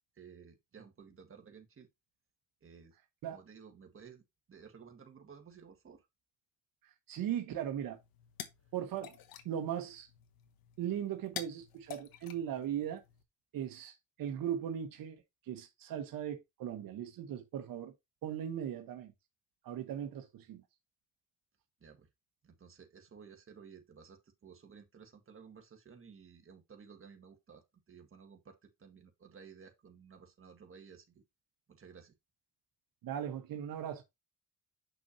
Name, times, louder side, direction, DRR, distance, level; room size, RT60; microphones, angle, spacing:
voice 1, 0.2-1.9 2.6-3.0 3.3-6.1 21.8-22.1 22.4-31.2 31.7-32.1, right 6 dB, 40° right, 1.8 m, -55 dB
voice 2, 7.1-8.0 8.7-9.1 9.4-10.1 10.8-13.0 13.5-17.9 18.2-19.1 19.6-20.6 33.0-34.0, right 10 dB, 80° right, 1.2 m, -38 dB
sound 1, 7.9-13.2, left 9 dB, 90° left, 1.2 m, -49 dB
6.8 x 6.1 x 2.8 m
cardioid pair, 100°, 34 cm